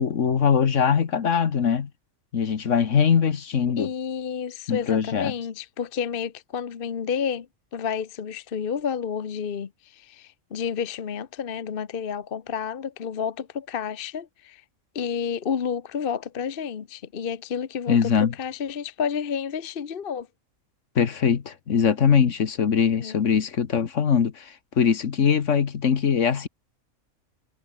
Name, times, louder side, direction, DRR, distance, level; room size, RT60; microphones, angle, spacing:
voice 1, 0.0-1.9 2.3-3.9 4.7-5.3 17.9-18.3 20.9-26.5, left 7 dB, 60° left, 1.6 m, -22 dB
voice 2, 3.8-14.6 14.9-20.3 22.9-23.2, left 7 dB, 45° left, 1.1 m, -30 dB
omnidirectional pair, 1.4 m